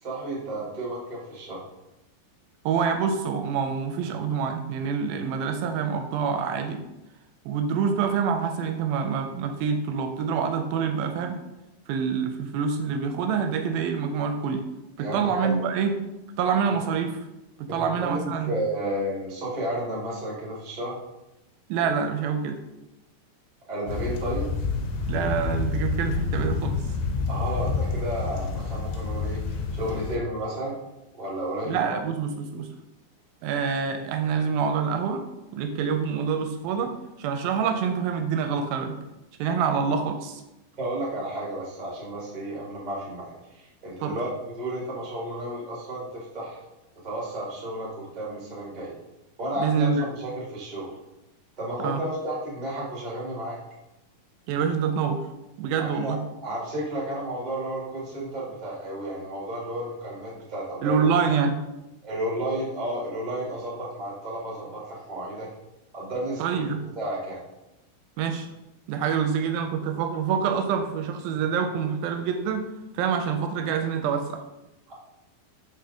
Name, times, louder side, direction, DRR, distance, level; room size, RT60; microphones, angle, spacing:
voice 1, 0.0-1.6 15.0-15.6 17.7-21.0 23.7-24.5 27.3-30.8 31.1-32.0 40.8-46.6 47.0-48.9 49.4-50.9 51.6-53.6 55.8-56.2 56.4-61.3 62.0-65.5 65.9-66.6 66.9-67.4 74.9-75.0, right 1 dB, 30° right, -6 dB, 0.7 m, -32 dB
voice 2, 2.7-6.8 7.5-11.4 11.9-14.6 15.0-15.9 16.4-17.2 17.6-18.5 21.7-22.6 25.1-26.8 31.7-32.7 33.4-35.2 35.5-36.9 37.2-39.0 39.4-40.4 44.0-44.2 49.6-50.1 51.8-52.0 54.5-55.2 55.6-56.2 60.8-61.6 66.4-66.8 68.2-68.5 68.9-72.7 72.9-74.4, right 6 dB, 80° right, 6 dB, 2.3 m, -26 dB
sound 1, 23.9-30.2, left 4 dB, 85° left, 2.7 m, -28 dB
5.8 x 5.0 x 3.4 m, 0.95 s
omnidirectional pair, 4.4 m